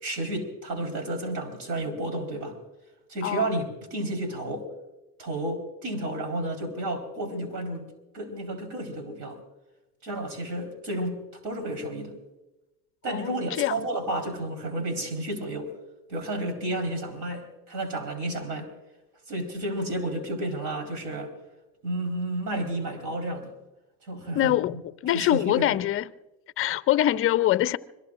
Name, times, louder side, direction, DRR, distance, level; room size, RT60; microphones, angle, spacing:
voice 1, 0.0-2.6 3.1-4.7 5.2-7.9 8.1-9.4 10.0-12.1 13.0-15.7 16.1-18.7 19.3-21.3 21.8-23.5 24.1-24.6 25.1-25.7, right 1 dB, 60° right, 4.2 m, -31 dB
voice 2, 3.2-3.5 13.1-13.9 24.4-24.8 25.0-26.1 26.6-27.8, left 13 dB, 30° left, 0.5 m, -24 dB
25.5 x 22.0 x 2.5 m
hypercardioid pair, 90°, 46 cm